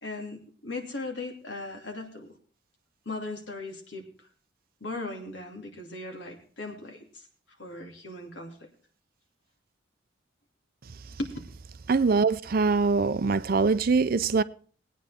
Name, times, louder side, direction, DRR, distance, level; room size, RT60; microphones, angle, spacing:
voice 1, 0.0-2.3 3.1-4.0 4.8-7.3 7.6-8.7 11.2-11.3, left 2 dB, 70° left, 2.7 m, -38 dB
voice 2, 11.9-14.4, right 4 dB, 50° right, 0.5 m, -23 dB
20.0 x 9.2 x 3.5 m
head